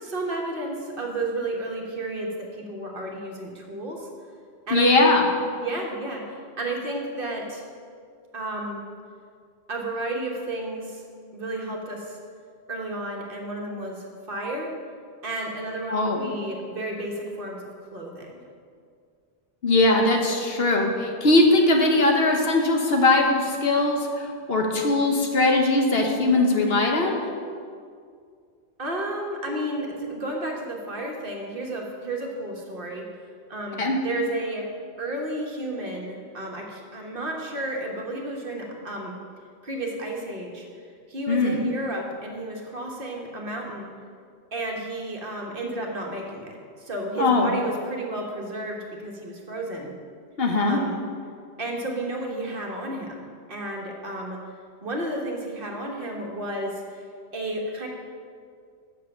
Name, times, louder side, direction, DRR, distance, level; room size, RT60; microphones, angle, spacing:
voice 1, 0.0-4.1 4.7-5.1 5.6-7.6 8.3-8.8 9.7-11.0 11.3-12.2 12.7-14.7 15.2-18.4 28.8-33.0 33.5-34.7 35.0-39.2 39.6-40.6 41.1-43.9 44.5-49.9 50.6-51.0 51.6-54.4 54.8-57.0 57.3-57.9, right 1 dB, 55° right, 0 dB, 1.4 m, -32 dB
voice 2, 4.7-5.2 15.9-16.3 19.6-27.2 33.8-34.0 41.3-41.6 47.2-47.5 50.4-50.8, left 2 dB, 60° left, 2 dB, 1.2 m, -20 dB
7.5 x 6.3 x 6.8 m, 2.2 s
omnidirectional pair, 1.2 m